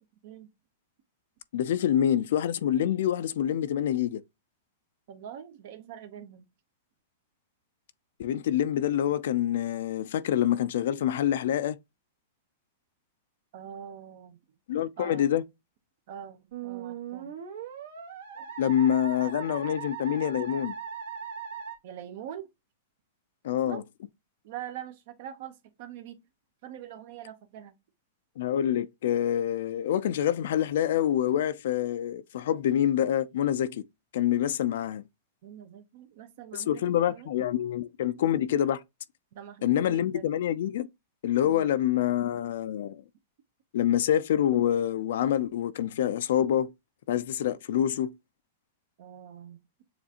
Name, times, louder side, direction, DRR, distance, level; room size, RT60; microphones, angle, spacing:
voice 1, 1.5-4.2 8.2-11.8 14.7-15.4 18.6-20.7 23.4-23.8 28.4-33.8 34.1-35.0 36.5-38.8 39.6-40.9 41.2-43.0 43.7-46.7 47.1-48.1, left 10 dB, 70° left, 0.4 m, -26 dB
voice 2, 5.1-6.4 13.5-14.4 15.0-15.3 16.1-17.4 18.3-19.0 19.6-19.8 21.8-22.5 23.6-23.8 24.4-26.2 26.6-27.7 35.4-37.3 38.1-38.2 39.3-40.3 41.4-41.7 49.0-49.6, right 10 dB, 55° right, 0.7 m, -44 dB
Musical instrument, 16.5-21.7, right 7 dB, 75° right, 1.3 m, -39 dB
6.9 x 2.4 x 2.8 m
hypercardioid pair, 145°, 0 cm